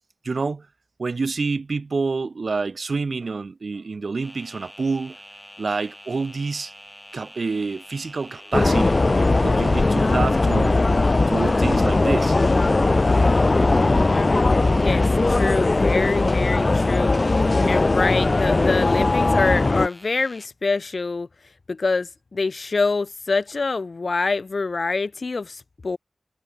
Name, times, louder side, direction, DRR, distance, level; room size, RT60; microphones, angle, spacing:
voice 1, 0.2-0.7 1.0-5.2 5.6-6.7 7.1-9.0 9.4-10.8 11.3-12.4, right 4 dB, 75° right, 1.5 m, -27 dB
sound 1, 4.2-20.5, equal, 10° left, 6.1 m, -45 dB
sound 2, 8.5-19.9, left 2 dB, 50° left, 0.4 m, -19 dB
voice 2, 14.8-17.2 17.6-21.3 21.7-26.0, left 3 dB, 70° left, 3.0 m, -25 dB
cardioid pair, 45°, 0 cm